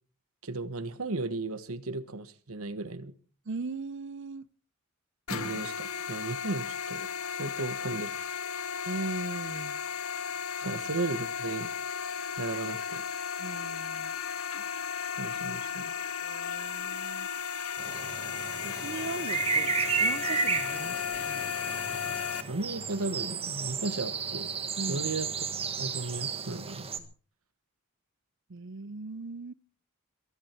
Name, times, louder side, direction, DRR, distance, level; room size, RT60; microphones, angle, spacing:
voice 1, 0.4-3.1 5.3-8.3 10.6-11.7 12.4-13.0 15.2-15.9 22.5-24.5 24.9-26.9, right 3 dB, 80° right, 1.3 m, -35 dB
voice 2, 3.5-4.5 8.9-9.8 10.6-10.8 13.4-14.1 16.2-17.3 18.6-21.9 24.8-25.1 28.5-29.5, right 3 dB, 55° right, 0.6 m, -39 dB
sound 1, 5.3-22.4, left 7 dB, 85° left, 1.6 m, -35 dB
sound 2, 17.8-27.0, right 5 dB, 25° right, 1.4 m, -33 dB
22.5 x 11.5 x 4.5 m
head